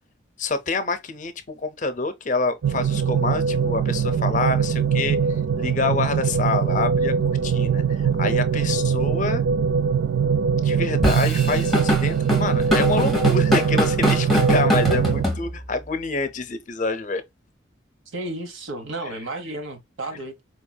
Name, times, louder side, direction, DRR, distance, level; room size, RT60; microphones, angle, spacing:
voice 1, 0.4-5.2 5.6-9.4 10.6-17.2 20.1-20.2, left 3 dB, 40° left, 0.5 m, -27 dB
sound 1, 2.6-15.2, right 6 dB, 70° right, 0.3 m, -22 dB
Drum kit / Drum, 11.0-15.8, left 1 dB, ahead, 1.1 m, -23 dB
voice 2, 18.1-20.4, right 2 dB, 90° right, 1.0 m, -32 dB
4.6 x 2.6 x 2.2 m
head